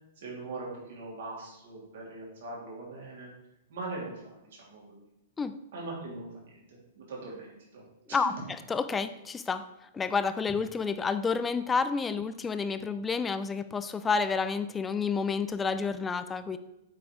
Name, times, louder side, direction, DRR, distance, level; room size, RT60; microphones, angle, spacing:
voice 1, 0.2-3.3 3.7-5.0 5.7-8.2, right 2 dB, 70° right, -3 dB, 3.0 m, -41 dB
voice 2, 8.7-9.7 9.9-16.6, left 5 dB, 15° left, 11 dB, 0.5 m, -29 dB
8.5 x 4.2 x 4.8 m, 0.90 s
hypercardioid pair, 125°, 0 cm